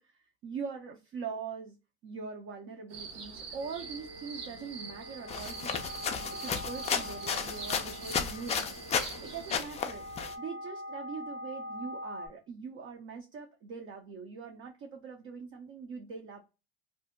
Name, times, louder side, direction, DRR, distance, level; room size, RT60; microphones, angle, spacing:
voice 1, 0.0-8.8 9.2-10.0 10.4-16.4, right 5 dB, 45° right, 2 dB, 0.6 m, -42 dB
sound 1, 2.9-9.6, right 5 dB, 90° right, 0.8 m, -45 dB
sound 2, 3.6-12.3, equal, 70° right, 1.1 m, -44 dB
sound 3, 5.3-9.2 9.5-10.3, left 7 dB, 20° left, 0.4 m, -33 dB
2.7 x 2.1 x 3.5 m, 0.29 s
supercardioid pair, 95°, 30 cm